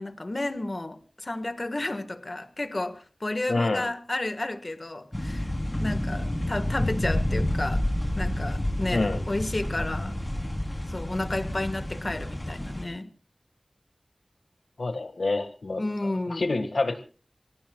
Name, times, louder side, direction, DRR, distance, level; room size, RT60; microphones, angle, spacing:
voice 1, 0.0-5.5 5.8-7.8 8.2-10.2 10.9-13.1 15.8-16.5, left 2 dB, 45° left, 9 dB, 1.5 m, -32 dB
voice 2, 3.5-3.9 8.9-9.2 14.8-15.8 16.3-17.0, left 2 dB, 90° left, 8 dB, 1.6 m, -27 dB
sound 1, 5.1-12.8, left 1 dB, 20° left, 3.3 m, -29 dB
28.0 x 17.0 x 2.3 m, 0.37 s
wide cardioid pair, 60°, 0 cm